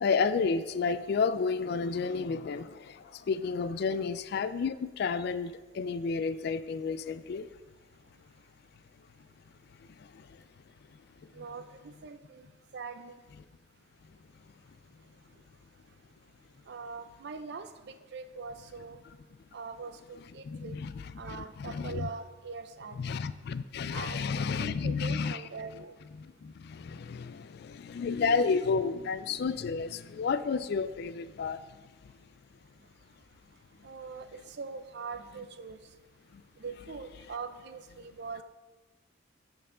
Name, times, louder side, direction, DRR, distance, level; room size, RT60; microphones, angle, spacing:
voice 1, 0.0-7.5 10.1-10.3 20.4-22.1 23.0-25.4 26.2-31.6 36.3-36.4, left 5 dB, 55° left, 14 dB, 0.3 m, -31 dB
voice 2, 11.3-12.5 12.7-13.2 16.7-19.0 19.5-20.8 21.2-23.1 23.9-25.9 33.8-35.8 36.6-38.4, right 4 dB, 55° right, 10 dB, 0.5 m, -42 dB
13.5 x 4.6 x 3.7 m, 1.3 s
head